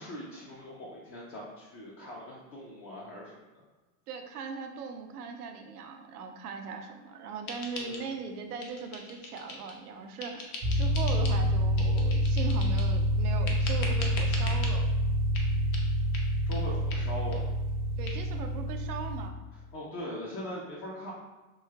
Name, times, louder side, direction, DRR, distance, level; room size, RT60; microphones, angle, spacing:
voice 1, 0.0-3.4 7.8-8.1 16.4-17.5 19.7-21.1, left 1 dB, 30° left, -5 dB, 0.5 m, -41 dB
voice 2, 4.1-14.9 18.0-19.4, right 5 dB, 80° right, 5 dB, 0.6 m, -39 dB
sound 1, 7.5-8.3 8.6-9.8 10.2-11.4 11.8-12.9 13.5-14.7 15.3-15.5 15.7-15.9 16.1-16.3 16.5-16.6 16.9-17.0 17.3-17.4 17.7-17.8 18.1-18.2, left 2 dB, 75° left, 0.7 m, -41 dB
sound 2, 10.6-19.3, equal, 25° right, 0.4 m, -27 dB
3.0 x 2.7 x 2.3 m, 1.1 s
hypercardioid pair, 85°, 44 cm